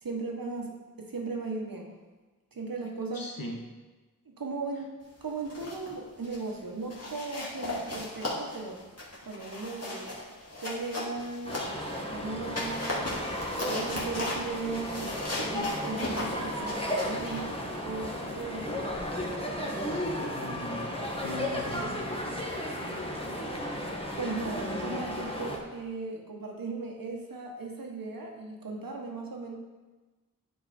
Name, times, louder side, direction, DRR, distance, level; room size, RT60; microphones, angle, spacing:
voice 1, 0.0-1.9 2.5-3.3 4.2-8.8 9.2-10.1 10.6-11.6 12.1-13.1 13.5-15.1 15.5-17.5 17.8-19.0 24.2-29.6, right 3 dB, 80° right, 0 dB, 1.3 m, -37 dB
voice 2, 3.1-3.6 19.9-22.2, left 1 dB, 80° left, 0 dB, 1.2 m, -40 dB
sound 1, 5.3-5.9 6.2-6.5 6.9-12.0 12.4-18.3, left 1 dB, 45° left, 2.0 m, -37 dB
sound 2, 11.4-25.6, left 1 dB, 15° left, 1.2 m, -34 dB
9.5 x 4.6 x 4.3 m, 1.2 s
wide cardioid pair, 65°, 34 cm